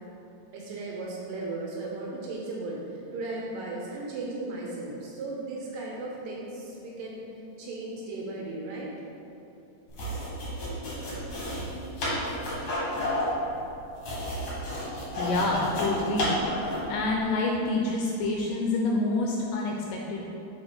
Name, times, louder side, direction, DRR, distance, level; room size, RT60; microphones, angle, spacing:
voice 1, 0.5-7.2 7.6-8.9, right 2 dB, 75° right, -3 dB, 2.2 m, -36 dB
sound 1, 9.9-16.9, left 1 dB, 55° left, 1.5 m, -31 dB
voice 2, 15.2-16.3 16.9-20.3, left 2 dB, 80° left, -1 dB, 2.1 m, -27 dB
6.1 x 4.3 x 5.0 m, 2.9 s
omnidirectional pair, 4.4 m